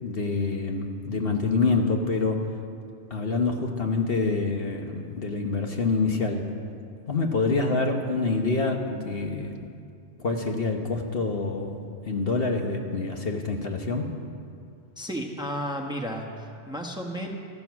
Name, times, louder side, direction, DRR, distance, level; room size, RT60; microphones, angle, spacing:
voice 1, 0.0-2.4 3.1-6.4 7.1-9.6 10.2-11.8 12.1-14.1, left 3 dB, 55° left, 3 dB, 1.3 m, -26 dB
voice 2, 15.0-17.3, equal, 5° right, 1 dB, 1.1 m, -33 dB
14.0 x 14.0 x 6.2 m, 2.4 s
omnidirectional pair, 1.2 m